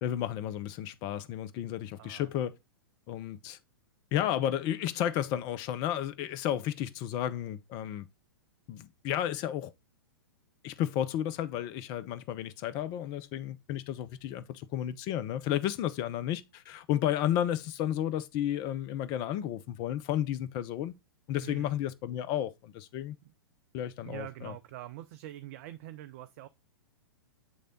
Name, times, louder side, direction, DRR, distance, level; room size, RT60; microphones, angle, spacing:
voice 1, 0.0-2.5 3.1-3.6 4.1-8.1 8.7-9.7 10.6-20.9 21.3-23.2 23.7-24.5, left 11 dB, 35° left, 0.6 m, -32 dB
voice 2, 2.0-2.3 21.4-21.7 23.2-23.3 24.0-26.5, right 15 dB, 45° right, 0.4 m, -44 dB
7.8 x 3.3 x 3.8 m
figure-of-eight pair, 105°, 12 cm